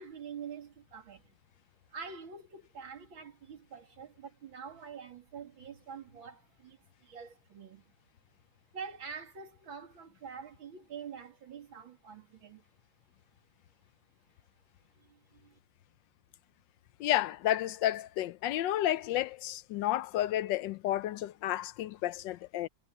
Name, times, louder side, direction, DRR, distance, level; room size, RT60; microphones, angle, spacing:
voice 1, 0.0-1.3 1.9-7.9 8.7-12.6 15.0-15.6, right 6 dB, 85° right, 3.4 m, -46 dB
voice 2, 17.0-22.7, left 13 dB, 75° left, 1.2 m, -31 dB
omnidirectional pair, 2.1 m